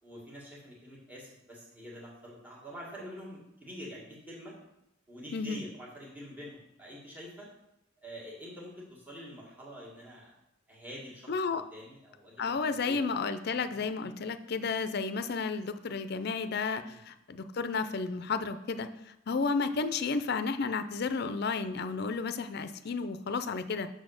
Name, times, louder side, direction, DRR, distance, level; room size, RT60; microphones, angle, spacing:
voice 1, 0.0-4.5 5.1-7.5 8.0-10.3 10.7-13.0 16.8-17.0, equal, 10° right, -4 dB, 1.8 m, -46 dB
voice 2, 5.3-5.6 11.3-11.6 12.4-18.9 19.3-23.9, left 4 dB, 55° left, 11 dB, 0.5 m, -32 dB
6.4 x 4.1 x 6.4 m, 0.83 s
head